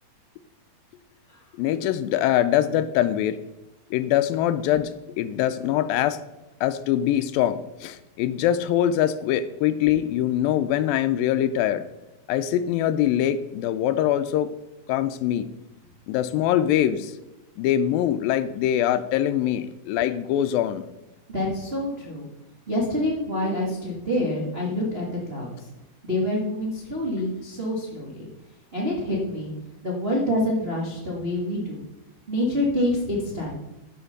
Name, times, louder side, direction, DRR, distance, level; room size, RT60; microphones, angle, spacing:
voice 1, 1.6-3.4 3.9-4.9 5.2-6.2 6.6-11.8 12.3-14.5 14.9-15.5 16.1-17.1 17.6-20.8, left 11 dB, 80° left, 12 dB, 2.2 m, -23 dB
voice 2, 21.3-22.3 22.7-25.5 26.0-28.3 28.7-29.5 29.8-31.8 32.3-33.5, left 1 dB, 45° right, -4 dB, 0.7 m, -26 dB
11.0 x 5.1 x 6.5 m, 0.96 s
omnidirectional pair, 4.2 m